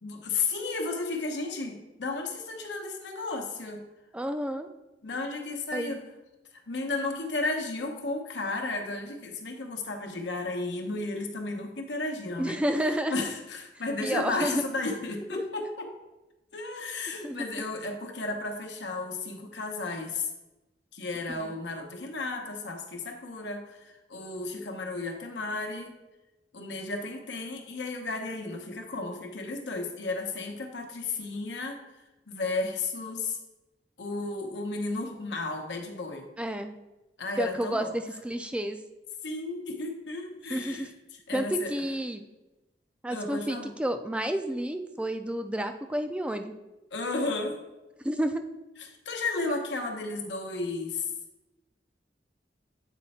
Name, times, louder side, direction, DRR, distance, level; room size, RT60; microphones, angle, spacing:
voice 1, 0.0-3.8 5.0-6.0 6.7-12.6 13.1-15.9 16.5-20.3 20.9-25.9 26.5-31.8 32.3-33.4 34.0-36.2 37.2-37.9 39.2-40.9 41.3-41.7 43.1-43.7 46.9-47.6 48.9-51.1, left 3 dB, 85° left, 3 dB, 0.9 m, -33 dB
voice 2, 4.1-4.7 5.7-6.0 12.4-13.1 14.0-14.6 15.3-15.4 17.2-17.4 21.4-21.5 36.4-36.8 37.4-38.8 40.5-40.9 41.3-42.2 43.0-46.5 48.0-48.4 49.5-49.6, right 1 dB, 5° right, 8 dB, 0.3 m, -30 dB
8.2 x 3.2 x 4.2 m, 1.0 s
head